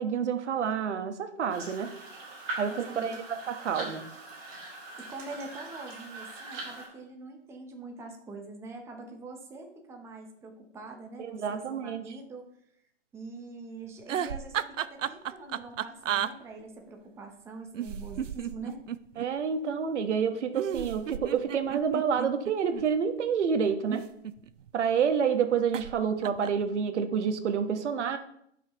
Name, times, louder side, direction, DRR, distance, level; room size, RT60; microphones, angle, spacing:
voice 1, 0.0-1.9 2.6-4.0 11.2-12.0 19.2-24.0 24.7-28.2, right 7 dB, 65° right, 7 dB, 1.2 m, -28 dB
sound 1, 1.5-6.9, right 2 dB, 30° right, 3.7 m, -41 dB
voice 2, 2.7-3.2 5.0-12.4 13.1-18.8, right 3 dB, 5° right, 2 dB, 0.7 m, -44 dB
sound 2, 14.0-16.3 17.7-19.3 20.5-22.9 23.7-24.7 25.7-26.0 26.2-26.6, right 9 dB, 90° right, 0.5 m, -33 dB
12.0 x 5.6 x 3.0 m, 0.73 s
hypercardioid pair, 140°, 37 cm